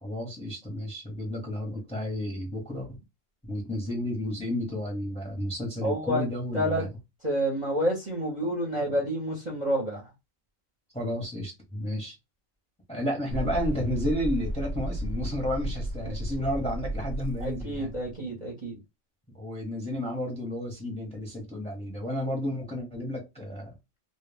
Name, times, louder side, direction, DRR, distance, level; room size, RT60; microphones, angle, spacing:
voice 1, 0.0-3.0 3.4-6.9 10.9-12.2 12.9-17.9 19.3-23.7, left 1 dB, 5° left, 0.7 m, -32 dB
voice 2, 5.8-6.2 6.5-6.8 7.2-10.1 17.4-18.8, equal, 35° right, 0.7 m, -29 dB
sound 1, 13.3-18.1, right 1 dB, 85° right, 0.4 m, -33 dB
2.3 x 2.2 x 3.3 m
omnidirectional pair, 1.4 m